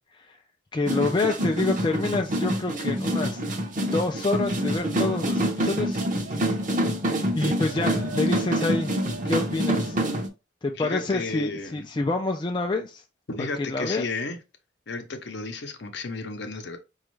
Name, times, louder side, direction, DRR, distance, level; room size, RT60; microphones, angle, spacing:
voice 1, 0.7-3.4 3.9-6.0 6.3-6.5 7.3-10.0 10.6-13.0 13.4-14.0, left 3 dB, 25° left, 0.3 m, -27 dB
sound 1, 0.9-10.3, equal, 40° right, 0.7 m, -26 dB
voice 2, 10.7-11.8 13.3-14.4 14.9-16.8, left 3 dB, 60° left, 0.7 m, -33 dB
5.1 x 2.3 x 3.1 m
head